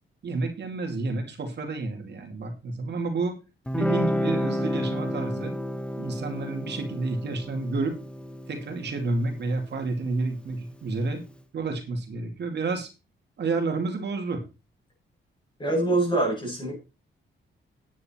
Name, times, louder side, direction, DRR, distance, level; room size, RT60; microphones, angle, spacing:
voice 1, 0.2-3.4 3.8-5.5 6.0-8.0 8.5-11.2 11.5-12.9 13.4-14.4, right 3 dB, 55° right, 5 dB, 2.5 m, -30 dB
Guitar, 3.7-10.8, equal, 5° left, 0.9 m, -31 dB
voice 2, 15.6-16.8, right 2 dB, 20° left, -2 dB, 7.2 m, -24 dB
9.8 x 9.5 x 4.4 m, 0.29 s
wide cardioid pair, 135°, 21 cm